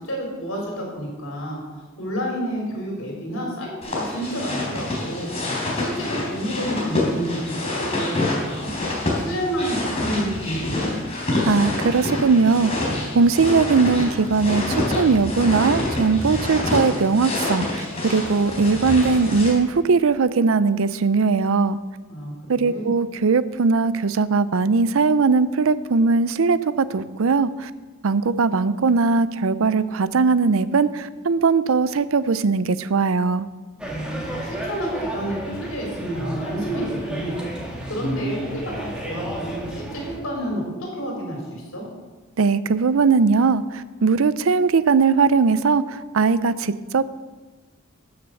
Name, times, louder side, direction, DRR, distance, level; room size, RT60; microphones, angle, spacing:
voice 1, 0.0-5.3 5.8-8.8 9.2-10.8 22.1-22.9 33.9-37.4 37.6-40.6 40.9-41.8, right 1 dB, 75° left, -1 dB, 4.6 m, -29 dB
sound 1, 3.8-19.5, left 2 dB, 30° left, 3.6 m, -27 dB
voice 2, 11.5-12.7 13.1-21.8 22.5-27.7 28.0-33.5 42.4-43.6 44.0-45.8 46.1-47.0, right 4 dB, 75° right, 16 dB, 0.5 m, -19 dB
sound 2, 33.8-40.2, equal, 5° right, 1.9 m, -32 dB
13.0 x 6.7 x 6.7 m, 1.3 s
head